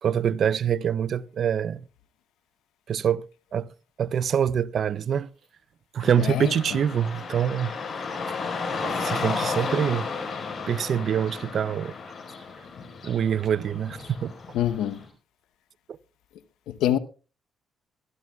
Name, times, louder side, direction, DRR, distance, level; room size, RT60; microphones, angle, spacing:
voice 1, 0.0-1.9 2.9-3.2 3.5-3.7 4.0-5.3 5.9-7.8 8.1-8.2 8.8-10.1 10.7-11.9 13.0-14.3 15.9-16.0, right 8 dB, 60° right, 0.5 m, -25 dB
Car passing by / Traffic noise roadway noise, 6.0-15.0, left 4 dB, 55° left, 4.6 m, -33 dB
voice 2, 6.2-6.8 14.5-15.0 16.7-17.0, left 11 dB, 90° left, 0.9 m, -26 dB
23.0 x 12.0 x 2.3 m
cardioid pair, 90°, 0 cm